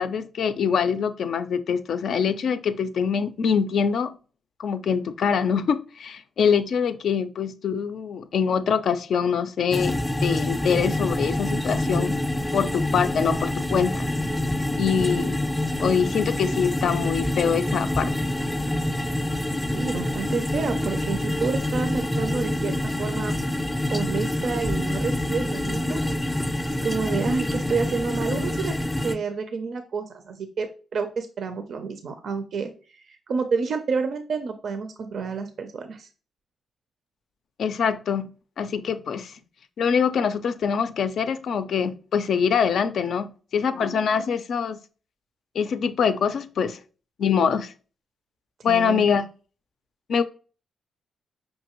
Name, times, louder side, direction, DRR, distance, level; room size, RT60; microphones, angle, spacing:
voice 1, 0.0-4.1 4.6-12.2 12.5-14.1 14.8-15.4 15.8-18.1 37.6-38.3 38.6-39.3 39.8-44.8 45.5-46.8 47.2-47.7 48.6-49.3 50.1-50.2, left 6 dB, 70° left, 0.4 m, -24 dB
sound 1, 9.7-29.2, left 1 dB, 5° left, 0.4 m, -26 dB
voice 2, 19.7-23.4 23.9-26.0 26.7-28.8 29.0-32.7 33.1-36.1 48.6-49.1, right 5 dB, 65° right, 0.4 m, -29 dB
5.6 x 2.6 x 2.9 m
cardioid pair, 80°, 0 cm